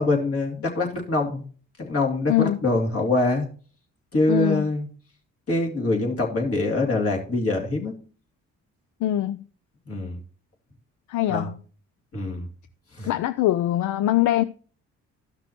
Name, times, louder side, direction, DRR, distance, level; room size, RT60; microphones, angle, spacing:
voice 1, 0.0-1.4 1.8-3.5 4.1-4.9 5.5-7.9 9.9-10.2 11.3-11.5 12.1-12.5 13.0-13.1, left 2 dB, 50° left, 2.6 m, -24 dB
voice 2, 2.3-2.6 4.3-4.6 9.0-9.4 11.1-11.5 13.1-14.4, left 13 dB, 75° left, 0.5 m, -22 dB
13.5 x 6.0 x 2.9 m
cardioid pair, 90°, 30 cm